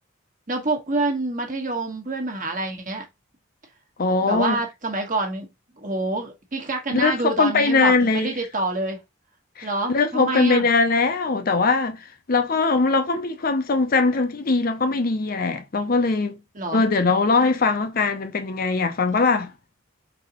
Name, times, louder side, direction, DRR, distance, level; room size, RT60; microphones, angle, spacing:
voice 1, 0.5-3.0 4.2-5.5 5.8-9.0 9.6-10.7 16.5-16.8, right 2 dB, 40° right, 1.3 m, -27 dB
voice 2, 4.0-4.6 6.9-8.3 9.6-16.3 16.7-19.5, left 4 dB, 45° left, 0.6 m, -21 dB
4.0 x 3.8 x 2.9 m
head